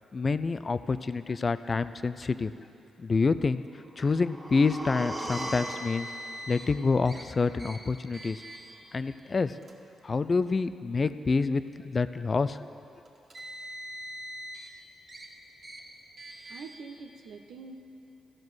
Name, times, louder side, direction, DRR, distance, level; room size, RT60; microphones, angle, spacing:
voice 1, 0.1-2.5 3.0-3.6 4.0-6.1 6.5-8.4 8.9-9.5 10.0-12.6, left 4 dB, 45° left, 13 dB, 0.4 m, -27 dB
sound 1, 3.8-7.8 8.1-8.2, right 1 dB, 20° right, 1.3 m, -40 dB
Car, 5.3-6.7 7.0-7.2 7.6-7.8 8.1-8.7 9.5-9.7 10.7-10.8 13.1-14.7 15.1-15.3 15.6-15.8 16.2-16.7, right 1 dB, 50° right, 1.7 m, -42 dB
voice 2, 16.5-17.8, right 4 dB, 75° right, 4 dB, 0.7 m, -44 dB
14.5 x 5.3 x 6.2 m, 2.6 s
hypercardioid pair, 45°, 0 cm